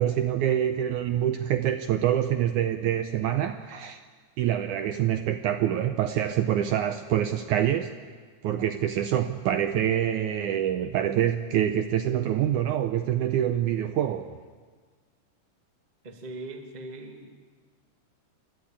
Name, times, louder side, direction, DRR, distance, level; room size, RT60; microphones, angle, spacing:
voice 1, 0.0-4.0 4.4-7.9 8.4-14.4, right 11 dB, 75° right, 9 dB, 1.9 m, -26 dB
voice 2, 16.0-17.3, right 2 dB, 20° right, 4 dB, 1.0 m, -40 dB
29.0 x 11.5 x 8.6 m, 1.5 s
omnidirectional pair, 4.1 m